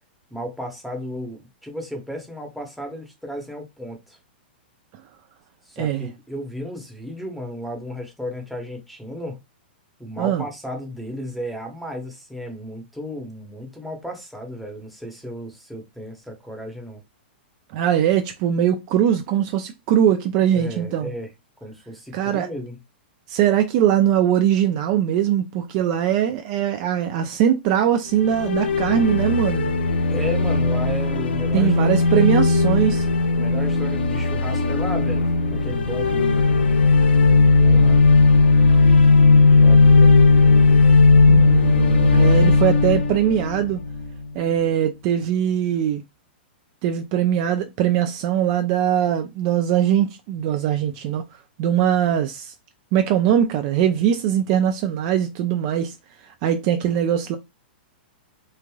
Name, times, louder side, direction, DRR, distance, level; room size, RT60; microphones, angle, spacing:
voice 1, 0.3-4.2 5.7-9.4 10.0-17.0 20.5-21.3 21.6-22.8 30.1-32.2 33.3-36.4 37.6-38.0 39.6-40.1, equal, ahead, 0.8 m, -34 dB
voice 2, 5.8-6.1 10.2-10.4 17.7-21.1 22.1-22.5 23.3-29.7 31.5-33.0 41.3-43.8 44.3-46.0 46.8-51.2 51.6-52.5 52.9-55.9 56.4-57.4, right 10 dB, 40° right, 0.4 m, -21 dB
sound 1, 28.1-44.2, left 3 dB, 85° left, 0.5 m, -16 dB
3.2 x 2.5 x 2.3 m
hypercardioid pair, 135°, 6 cm